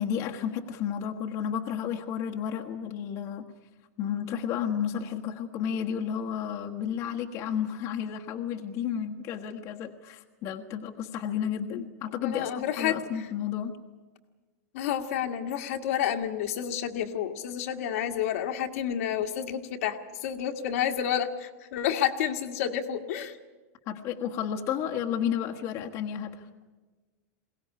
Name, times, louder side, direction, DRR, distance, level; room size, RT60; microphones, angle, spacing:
voice 1, 0.0-3.5 4.0-12.5 12.8-13.7 23.9-26.5, left 8 dB, 35° left, 1 dB, 1.4 m, -32 dB
voice 2, 12.2-13.3 14.7-23.4, left 9 dB, 60° left, 5 dB, 1.7 m, -30 dB
22.0 x 18.0 x 9.9 m, 1.3 s
supercardioid pair, 160°, 9 cm